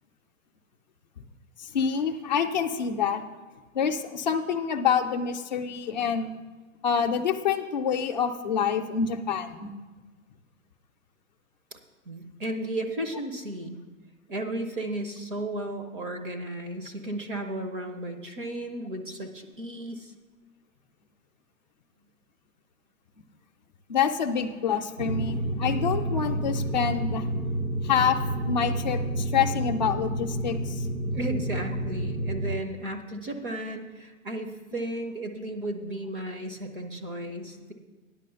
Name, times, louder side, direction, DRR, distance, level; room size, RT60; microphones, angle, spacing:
voice 1, 1.6-3.2 3.7-6.3 6.8-9.7 23.9-27.2 27.8-30.9, left 7 dB, 35° left, 4 dB, 0.5 m, -27 dB
voice 2, 12.1-13.8 14.3-20.1 31.1-37.7, right 1 dB, 40° right, 5 dB, 0.8 m, -34 dB
sound 1, 25.0-32.5, right 1 dB, 55° right, 1.5 m, -29 dB
9.9 x 5.8 x 6.8 m, 1.3 s
hypercardioid pair, 170°, 41 cm